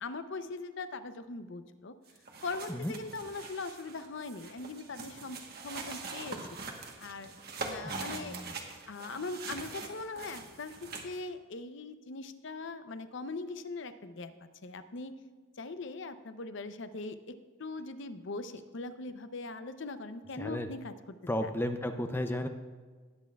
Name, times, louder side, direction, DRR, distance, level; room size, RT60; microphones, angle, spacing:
voice 1, 0.0-2.0 2.4-6.4 7.0-7.3 7.6-8.4 8.9-14.3 14.6-15.2 15.6-20.9 21.4-21.5, left 3 dB, 60° left, 10 dB, 0.6 m, -41 dB
sound 1, 2.1-11.2, right 4 dB, 45° right, 1.2 m, -43 dB
voice 2, 7.8-8.5 20.4-20.7 21.3-22.5, left 1 dB, 10° left, 7 dB, 0.4 m, -34 dB
19.0 x 8.4 x 2.3 m, 1.5 s
head